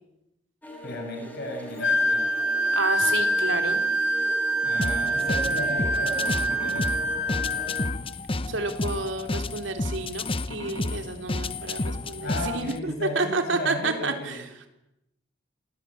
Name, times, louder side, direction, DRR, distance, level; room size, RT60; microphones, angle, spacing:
sound 1, 0.6-7.9, left 2 dB, 10° left, 5.4 m, -41 dB
voice 1, 0.8-2.3 4.6-6.9 12.2-14.4, left 1 dB, 55° left, 3 dB, 6.9 m, -34 dB
Wind instrument woodwind instrument, 1.8-8.0, right 1 dB, 80° left, 2.6 m, -25 dB
voice 2, 2.7-3.8 8.5-14.4, right 3 dB, 70° right, 6 dB, 3.8 m, -30 dB
sound 2, 4.8-12.8, left 2 dB, 30° left, 0.9 m, -31 dB
28.0 x 20.0 x 8.8 m, 0.88 s
head